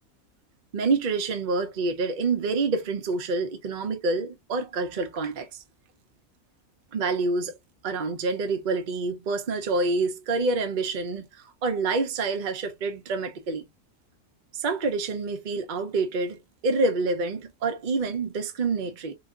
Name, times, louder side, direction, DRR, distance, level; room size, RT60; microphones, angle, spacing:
voice 1, 0.7-5.6 6.9-7.5 7.8-11.2 11.6-13.7 14.5-19.1, right 3 dB, 45° right, 0.7 m, -27 dB
3.9 x 2.7 x 2.4 m
omnidirectional pair, 1.5 m